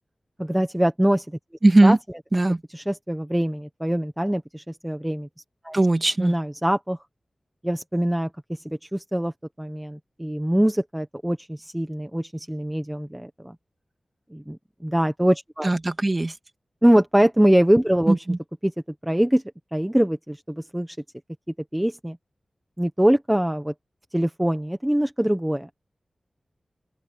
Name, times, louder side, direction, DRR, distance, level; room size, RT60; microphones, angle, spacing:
voice 1, 0.4-1.3 1.8-2.0 2.7-5.3 5.6-5.8 6.2-7.0 7.6-9.3 9.6-13.5 14.3-14.6 14.8-15.7 16.8-18.2 18.6-18.7 19.0-19.4 19.7-21.0 21.7-22.2 22.8-23.7 24.1-25.7, right 1 dB, 10° right, 1.2 m, -23 dB
voice 2, 1.6-2.0 2.3-2.6 5.7-6.4 15.6-16.3 18.1-18.4, right 2 dB, 30° right, 2.5 m, -19 dB
open air
wide cardioid pair, 105°, 0 cm